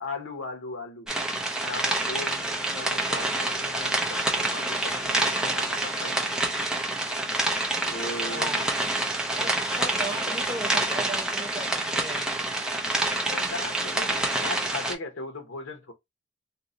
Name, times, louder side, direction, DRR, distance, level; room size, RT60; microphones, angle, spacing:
voice 1, 0.0-1.1 1.6-6.6 7.8-8.6 9.2-9.5 13.1-15.9, left 3 dB, 85° left, 0.9 m, -38 dB
sound 1, 1.1-14.9, right 2 dB, 5° right, 0.4 m, -27 dB
voice 2, 8.2-8.6 9.4-12.3, right 1 dB, 20° right, 0.9 m, -37 dB
2.7 x 2.0 x 3.7 m
head